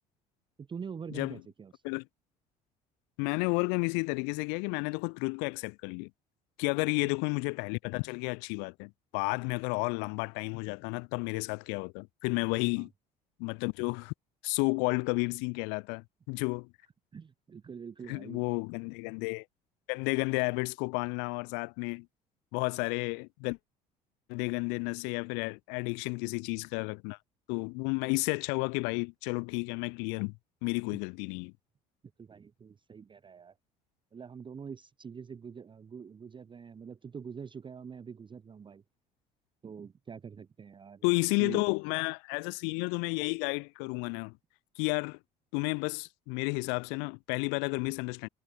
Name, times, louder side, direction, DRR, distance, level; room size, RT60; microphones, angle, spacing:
voice 1, 0.6-1.7 7.0-7.1 12.8-12.9 17.1-18.4 32.2-33.5 34.1-38.8 39.6-41.0 41.4-41.6, right 6 dB, 25° right, 0.7 m, -44 dB
voice 2, 3.2-6.1 6.6-12.9 13.4-14.1 14.4-16.7 18.1-19.4 19.9-22.1 22.5-23.6 24.3-27.2 27.5-30.3 30.6-31.5 41.0-44.3 44.8-45.2 45.5-48.3, left 36 dB, 60° left, 0.5 m, -32 dB
figure-of-eight pair, 60°, 21 cm